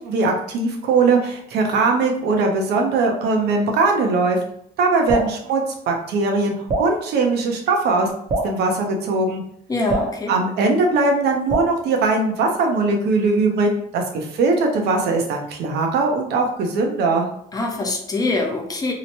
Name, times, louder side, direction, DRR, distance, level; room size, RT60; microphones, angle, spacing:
voice 1, 0.0-4.4 4.8-6.5 6.8-8.1 8.4-9.4 10.3-17.3, right 3 dB, 75° right, 2 dB, 0.6 m, -20 dB
Drip, 5.1-5.4 6.7-6.9 8.3-8.6 9.9-10.2 11.5-11.8, right 2 dB, 35° right, 0.7 m, -23 dB
voice 2, 9.7-10.3 17.5-18.9, left 2 dB, 20° left, 2 dB, 0.5 m, -24 dB
2.8 x 2.1 x 2.8 m, 0.70 s
cardioid pair, 110°, 17 cm